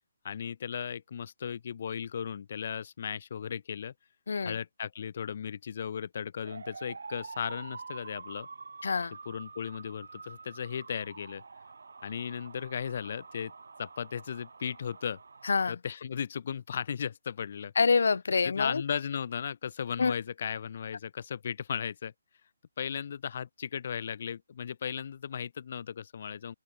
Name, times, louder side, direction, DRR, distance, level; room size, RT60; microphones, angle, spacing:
voice 1, 0.2-3.9 4.4-8.5 9.3-11.4 12.0-13.5 13.8-15.2 15.7-17.7 18.4-22.1 22.8-26.5, left 7 dB, 35° left, 0.8 m, -36 dB
voice 2, 4.3-4.6 8.8-9.1 15.4-15.8 17.8-18.8 20.0-20.1, left 5 dB, 60° left, 0.4 m, -26 dB
Police siren, 6.4-15.7, right 4 dB, 70° right, 0.6 m, -47 dB
open air
hypercardioid pair, 175°, 0 cm